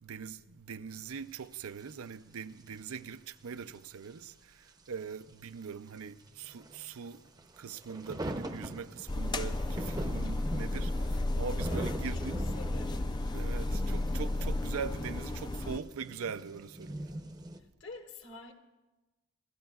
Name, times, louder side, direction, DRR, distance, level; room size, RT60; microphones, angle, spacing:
voice 1, 0.0-7.2 7.6-12.4 13.3-17.2, right 6 dB, 90° right, 0.5 m, -42 dB
sound 1, 1.5-1.6 1.8-1.9 2.3-3.0 3.7-3.8 4.0-4.1 4.7-4.9 5.6-17.6, right 1 dB, 20° right, 0.6 m, -42 dB
sound 2, 9.1-15.8, left 2 dB, 20° left, 0.3 m, -33 dB
voice 2, 11.7-12.2 12.6-13.2 17.8-18.5, left 3 dB, 60° left, 1.6 m, -47 dB
27.0 x 12.5 x 2.4 m
head